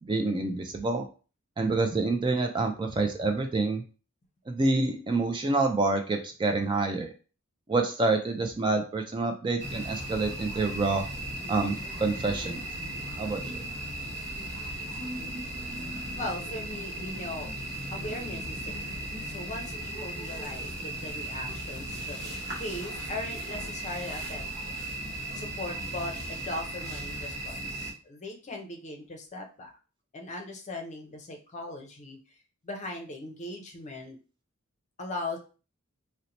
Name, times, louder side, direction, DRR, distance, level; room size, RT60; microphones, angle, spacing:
voice 1, 0.0-1.1 1.6-3.8 4.5-7.1 7.7-11.1 11.5-12.6 13.2-13.6, right 3 dB, 20° right, 4 dB, 0.3 m, -27 dB
sound 1, 9.6-27.9, right 1 dB, 50° right, 1.0 m, -36 dB
voice 2, 16.2-17.5 17.9-24.7 25.3-29.7 30.1-32.2 32.6-34.2 35.0-35.4, left 2 dB, 35° left, 3 dB, 0.6 m, -39 dB
2.8 x 2.1 x 3.9 m, 0.36 s
head